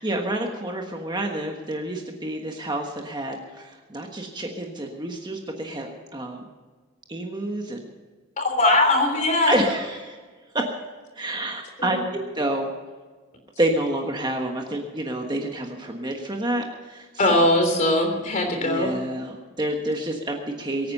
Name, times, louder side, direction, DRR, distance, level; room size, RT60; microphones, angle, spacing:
voice 1, 0.0-6.5 7.1-7.9 9.5-10.2 10.5-10.8 11.1-12.7 13.6-17.5 18.6-20.9, right 1 dB, 20° right, 2 dB, 1.3 m, -28 dB
voice 2, 8.4-9.6 11.8-12.0 17.2-18.9, left 1 dB, 35° left, 4 dB, 3.5 m, -20 dB
23.0 x 9.5 x 5.5 m, 1.4 s
head